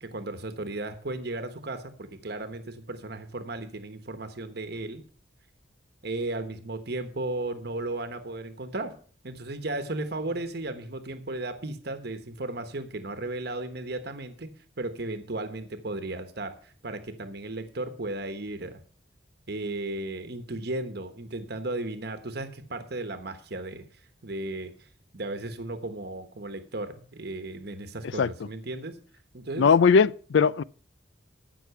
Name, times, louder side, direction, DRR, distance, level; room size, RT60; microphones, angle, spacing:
voice 1, 0.0-5.0 6.0-8.9 9.2-18.8 19.5-23.8 24.2-24.9 25.1-29.0 29.3-29.8, right 2 dB, 55° right, 1.2 m, -35 dB
voice 2, 29.6-30.6, left 5 dB, 65° left, 0.4 m, -19 dB
13.0 x 6.1 x 5.8 m
head